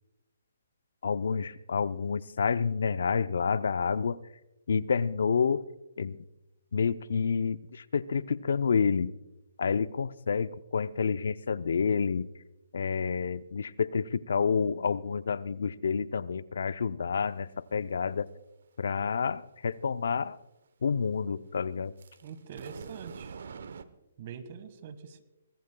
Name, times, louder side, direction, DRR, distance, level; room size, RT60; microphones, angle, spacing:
voice 1, 1.0-4.2 4.7-5.7 6.0-6.2 6.7-9.1 9.6-12.3 12.7-18.3 18.8-20.4 20.8-21.9, left 5 dB, 70° left, 16 dB, 0.5 m, -29 dB
sound 1, 22.0-23.8, right 6 dB, 65° right, 0.9 m, -44 dB
voice 2, 22.2-23.4 24.2-25.2, right 6 dB, 45° right, 12 dB, 1.6 m, -44 dB
23.5 x 19.0 x 2.3 m, 1.0 s
hypercardioid pair, 145°, 0 cm